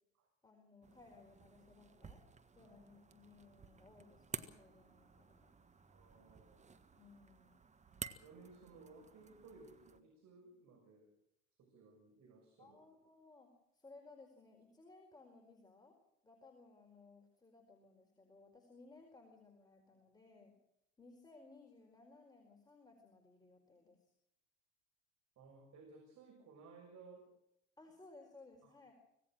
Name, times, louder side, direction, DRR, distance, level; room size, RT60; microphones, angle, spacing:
voice 1, 0.4-2.2 2.5-5.5 7.0-7.6 12.6-16.0 16.2-20.5 21.0-24.1 27.8-28.9, left 3 dB, 10° left, 2 dB, 4.6 m, -61 dB
sound 1, 0.8-10.0, right 5 dB, 20° right, 1.5 m, -53 dB
voice 2, 5.9-6.6 8.2-11.1 11.6-12.8 25.4-27.2 28.6-28.7, right 4 dB, 45° right, 1 dB, 6.5 m, -59 dB
25.5 x 17.0 x 6.3 m, 0.81 s
hypercardioid pair, 75°, 39 cm